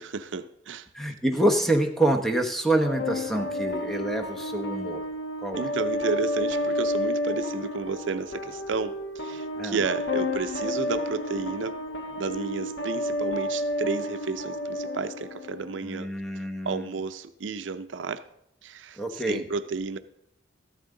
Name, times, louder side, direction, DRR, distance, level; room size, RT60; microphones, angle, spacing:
voice 1, 0.0-0.9 5.6-11.8 12.2-18.3 18.6-20.0, right 4 dB, 75° right, 11 dB, 0.5 m, -32 dB
voice 2, 0.9-5.0 5.4-5.7 9.6-9.8 15.8-16.9 19.0-19.4, right 1 dB, ahead, 4 dB, 1.0 m, -26 dB
sound 1, 2.8-15.8, left 1 dB, 70° left, 1.1 m, -31 dB
13.5 x 12.5 x 3.8 m, 0.79 s
head